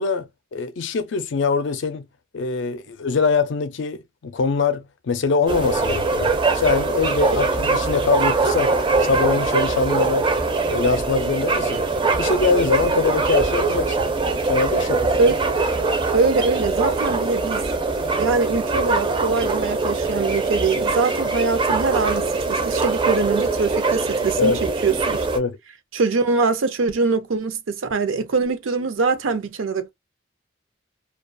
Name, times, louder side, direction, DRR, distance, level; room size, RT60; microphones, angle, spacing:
voice 1, 0.0-2.0 2.3-8.7 9.0-10.3 10.7-11.8 12.2-14.0 14.5-15.1 24.4-24.6 25.3-25.6, left 5 dB, 60° left, 0.4 m, -23 dB
sound 1, 5.5-25.4, right 3 dB, 25° right, 0.4 m, -22 dB
voice 2, 16.1-17.6 18.2-24.5 24.8-25.3 25.9-29.9, right 4 dB, 75° right, 0.6 m, -23 dB
2.3 x 2.3 x 2.5 m
head